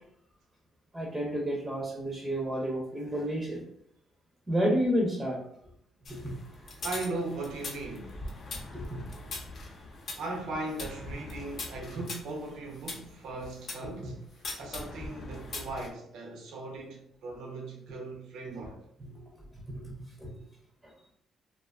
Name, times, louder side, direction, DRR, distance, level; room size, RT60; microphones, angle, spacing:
voice 1, 0.9-3.6 4.5-5.4 6.1-6.4 8.7-9.0 13.8-13.9 17.9-18.0 19.1-19.9 20.2-20.3, equal, 15° right, 0.6 m, -31 dB
sound 1, 6.0-13.9 14.4-15.9, left 2 dB, 55° left, 0.6 m, -41 dB
voice 2, 6.8-8.2 10.2-18.8, right 2 dB, 85° right, 0.6 m, -38 dB
2.4 x 2.2 x 2.3 m
cardioid pair, 90°, 0 cm